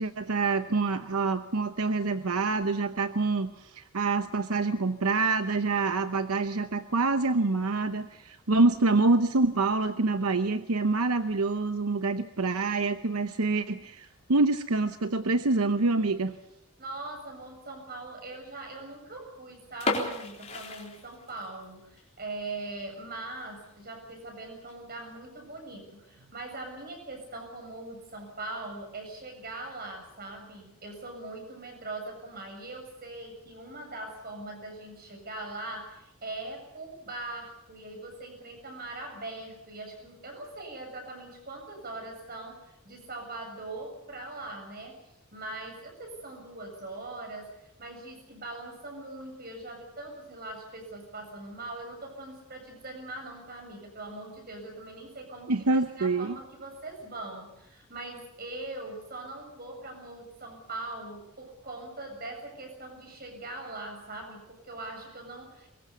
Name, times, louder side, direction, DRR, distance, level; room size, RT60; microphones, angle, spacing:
voice 1, 0.0-16.4 55.5-56.4, right 3 dB, 85° right, 9 dB, 0.9 m, -26 dB
voice 2, 16.8-45.0 45.3-47.5 47.8-65.7, right 2 dB, 45° right, 3 dB, 7.5 m, -41 dB
sound 1, 19.7-21.6 22.0-22.1 22.6-22.8 23.2-23.3 23.5-23.6 24.4-24.7, left 3 dB, 30° left, 3.9 m, -33 dB
23.0 x 21.5 x 6.9 m, 0.85 s
head